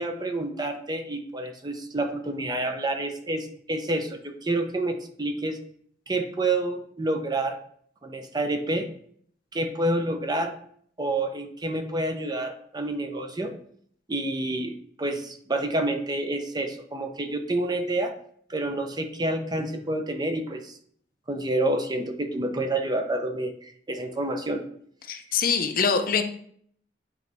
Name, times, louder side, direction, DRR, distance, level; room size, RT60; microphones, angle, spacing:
voice 1, 0.0-5.6 6.1-7.6 8.0-8.9 9.5-10.6 11.0-13.5 14.1-18.1 18.5-20.8 21.3-24.6 26.2-26.3, right 2 dB, 25° right, 6 dB, 0.7 m, -28 dB
voice 2, 25.1-26.2, left 6 dB, 55° left, 8 dB, 0.6 m, -24 dB
8.9 x 4.0 x 3.4 m, 0.62 s
head